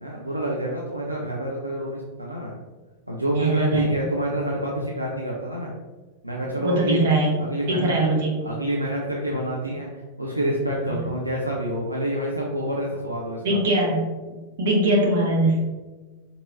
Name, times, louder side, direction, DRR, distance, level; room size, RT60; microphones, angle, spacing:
voice 1, 0.0-2.5 3.1-5.7 6.2-7.0 7.4-8.1 8.4-13.6, right 1 dB, 90° right, -4 dB, 0.5 m, -27 dB
voice 2, 3.3-3.9 6.5-8.4 10.8-11.0 13.4-15.7, right 1 dB, 60° right, -1 dB, 1.0 m, -22 dB
4.8 x 2.7 x 2.6 m, 1.3 s
figure-of-eight pair, 90°, 0 cm